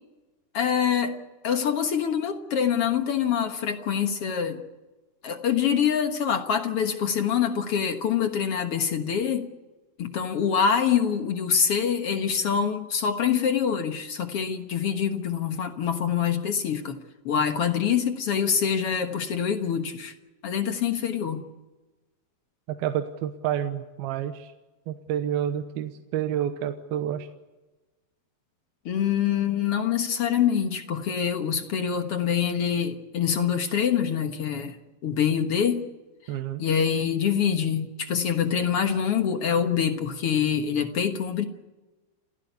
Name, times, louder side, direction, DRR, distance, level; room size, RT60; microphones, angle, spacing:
voice 1, 0.5-1.2 1.4-4.6 5.2-9.5 10.0-17.0 17.2-20.1 20.4-21.4 28.8-34.8 35.0-35.8 36.6-41.4, left 7 dB, 60° left, 6 dB, 1.5 m, -25 dB
voice 2, 22.7-24.5 24.9-27.3 36.3-36.6, right 10 dB, 80° right, 7 dB, 2.9 m, -29 dB
29.5 x 16.0 x 8.2 m, 1.2 s
omnidirectional pair, 4.5 m